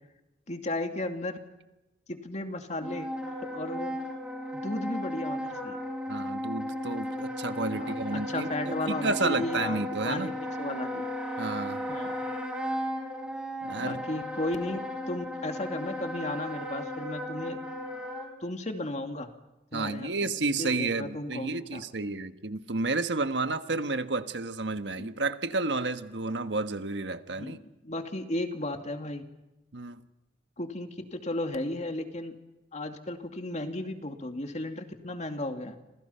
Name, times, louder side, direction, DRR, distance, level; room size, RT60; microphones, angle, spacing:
voice 1, 0.5-1.4 2.1-3.9 4.6-5.8 7.7-9.8 10.0-11.1 11.9-12.2 13.8-14.8 15.1-17.6 18.4-19.3 19.7-20.1 20.6-21.8 25.0-25.1 27.4-29.2 30.6-32.4 32.7-35.8, left 1 dB, 40° left, 2.5 m, -34 dB
Wind instrument woodwind instrument, 2.8-18.3, left 1 dB, 5° right, 5.4 m, -35 dB
voice 2, 6.1-10.3 11.4-11.8 13.6-14.0 19.7-27.6 29.7-30.0, right 3 dB, 90° right, 1.4 m, -31 dB
30.0 x 26.5 x 5.7 m
head